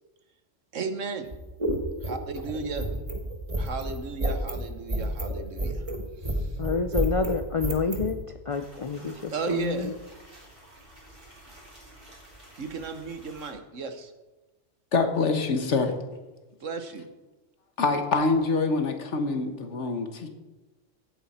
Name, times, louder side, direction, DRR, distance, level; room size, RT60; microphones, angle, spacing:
voice 1, 0.7-1.3 2.0-2.9 3.6-5.8 6.2-6.5 9.3-9.9 12.6-14.1 16.6-17.1, right 4 dB, 75° right, 8 dB, 1.5 m, -34 dB
sound 1, 1.2-8.1, right 1 dB, 25° right, 1.5 m, -30 dB
voice 2, 6.6-8.2 8.5-9.9, left 4 dB, 45° left, 8 dB, 0.4 m, -28 dB
sound 2, 8.5-13.5, right 1 dB, 45° right, 4.0 m, -51 dB
voice 3, 14.9-15.9 17.8-20.3, left 3 dB, 65° left, 6 dB, 1.6 m, -25 dB
16.0 x 8.9 x 4.3 m, 1.1 s
omnidirectional pair, 1.3 m